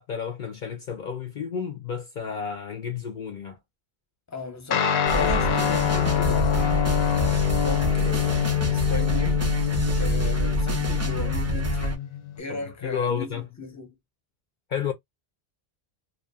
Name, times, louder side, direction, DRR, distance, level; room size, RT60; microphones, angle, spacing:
voice 1, 0.0-3.6 12.5-13.4 14.7-14.9, left 7 dB, 60° left, 0.6 m, -31 dB
voice 2, 4.3-9.6 9.9-11.9 12.4-13.9, left 3 dB, 20° left, 0.7 m, -36 dB
Guitar, 4.7-12.4, left 10 dB, 85° left, 0.8 m, -25 dB
sound 1, 5.1-11.9, right 3 dB, 25° right, 0.3 m, -27 dB
2.7 x 2.3 x 2.3 m
omnidirectional pair, 1.0 m